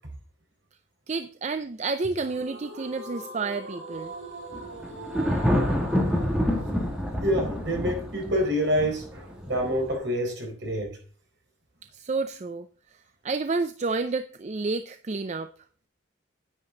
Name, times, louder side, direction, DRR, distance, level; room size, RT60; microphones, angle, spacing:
voice 1, 1.1-4.1 11.8-12.7 13.2-15.5, right 3 dB, 35° right, 0.5 m, -30 dB
sound 1, 2.2-9.3, right 1 dB, 85° right, 5.4 m, -42 dB
Thunder, 4.5-9.9, equal, 5° right, 2.3 m, -27 dB
voice 2, 7.2-11.0, equal, 60° right, 4.3 m, -27 dB
9.8 x 9.5 x 3.9 m
head